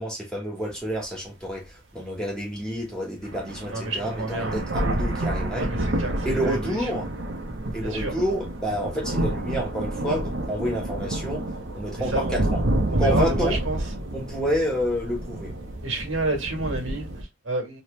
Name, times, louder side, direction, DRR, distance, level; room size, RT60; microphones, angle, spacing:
voice 1, 0.0-5.7 6.2-7.1 7.7-11.4 11.7-12.6 12.9-13.6 14.1-15.5, equal, 5° left, 1.3 m, -29 dB
sound 1, 0.7-0.8 1.4-1.5 2.8-2.9 3.2-17.2, right 1 dB, 65° right, 0.9 m, -29 dB
voice 2, 3.7-4.6 5.6-7.1 7.8-8.2 12.0-12.4 12.9-13.8 15.8-17.8, right 2 dB, 85° right, 1.6 m, -30 dB
3.2 x 2.9 x 3.1 m
head